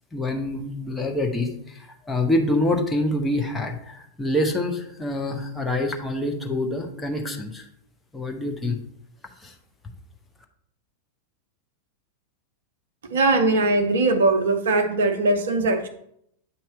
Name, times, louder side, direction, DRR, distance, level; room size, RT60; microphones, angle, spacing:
voice 1, 0.1-1.5 2.1-7.7 8.1-8.8 9.4-9.5, left 1 dB, 10° left, 2 dB, 1.0 m, -26 dB
voice 2, 13.1-15.9, right 2 dB, 60° right, 8 dB, 0.6 m, -20 dB
8.6 x 2.9 x 5.0 m, 0.72 s
figure-of-eight pair, 90°, 0 cm